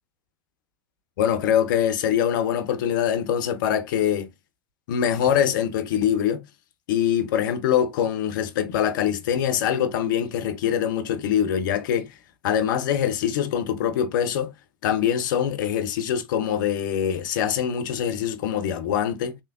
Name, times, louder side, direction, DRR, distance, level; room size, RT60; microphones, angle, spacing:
voice 1, 1.2-4.3 4.9-6.4 6.9-12.1 12.4-14.5 14.8-19.4, left 9 dB, 70° left, 0.6 m, -23 dB
3.3 x 2.9 x 2.4 m
hypercardioid pair, 85°, 11 cm